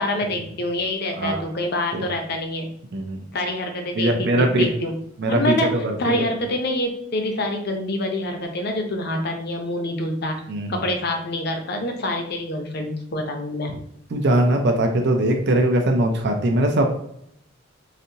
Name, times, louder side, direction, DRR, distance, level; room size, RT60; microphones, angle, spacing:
voice 1, 0.0-2.7 3.3-5.0 5.3-10.4 10.7-13.7, left 1 dB, 55° left, 4 dB, 0.7 m, -26 dB
voice 2, 2.9-3.2 4.0-4.7 5.2-6.3 10.5-10.8 14.1-17.0, right 1 dB, 60° right, 3 dB, 0.5 m, -21 dB
4.1 x 2.6 x 2.8 m, 0.74 s
head